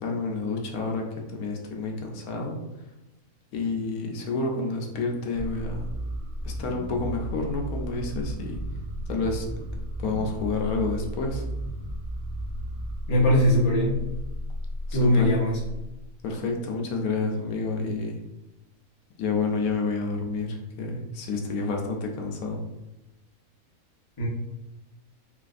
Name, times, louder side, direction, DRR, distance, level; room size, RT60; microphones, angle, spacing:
voice 1, 0.0-1.0 1.3-2.6 3.5-5.9 6.4-8.6 9.1-9.5 10.0-11.4 14.9-15.3 16.2-18.2 19.2-22.6, left 3 dB, 85° left, 1 dB, 1.1 m, -29 dB
sound 1, 5.3-16.2, equal, 75° right, 1.0 m, -34 dB
voice 2, 13.1-14.0 14.9-15.6 24.2-24.3, left 1 dB, 25° left, -6 dB, 0.8 m, -21 dB
4.1 x 2.4 x 2.4 m, 0.97 s
omnidirectional pair, 1.6 m